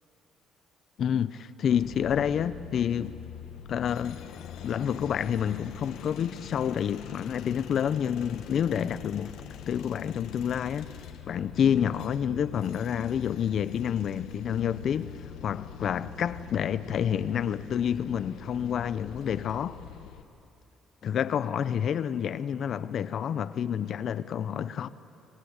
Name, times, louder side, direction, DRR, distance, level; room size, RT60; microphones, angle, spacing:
voice 1, 1.0-3.2 3.7-4.2 4.6-9.3 9.7-10.9 11.3-15.1 15.4-19.8 21.0-24.9, left 8 dB, 50° left, 0.6 m, -28 dB
sound 1, 1.7-20.2, left 9 dB, 80° left, 1.5 m, -44 dB
25.0 x 19.5 x 8.2 m
cardioid pair, 130°, 0 cm